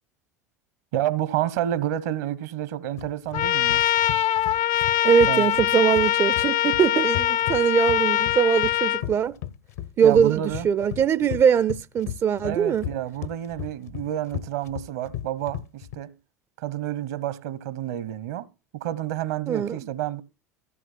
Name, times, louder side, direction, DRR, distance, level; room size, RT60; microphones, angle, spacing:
voice 1, 0.9-3.8 5.3-5.5 10.0-10.7 12.4-16.1 16.6-18.5 18.7-20.2, right 12 dB, 65° right, 1.0 m, -29 dB
sound 1, 3.0-16.0, left 12 dB, 65° left, 1.0 m, -35 dB
Trumpet, 3.3-9.0, left 12 dB, 50° left, 0.5 m, -23 dB
voice 2, 5.0-9.4 10.0-12.9 19.5-19.8, right 7 dB, 30° right, 0.5 m, -21 dB
15.0 x 6.2 x 4.3 m
figure-of-eight pair, 75°, 9 cm